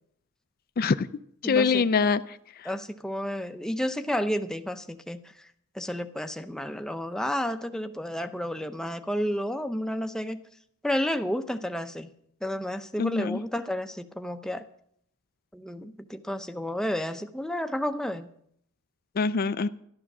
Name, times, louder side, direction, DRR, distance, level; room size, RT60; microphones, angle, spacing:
voice 1, 0.8-1.1 1.4-2.2 13.0-13.4 19.2-19.7, left 5 dB, 45° left, 13 dB, 0.4 m, -24 dB
voice 2, 1.4-1.9 2.6-5.2 5.7-10.4 10.8-12.1 12.4-14.6 15.5-18.3, equal, 5° left, 8 dB, 0.6 m, -31 dB
12.5 x 12.0 x 6.1 m, 0.70 s
head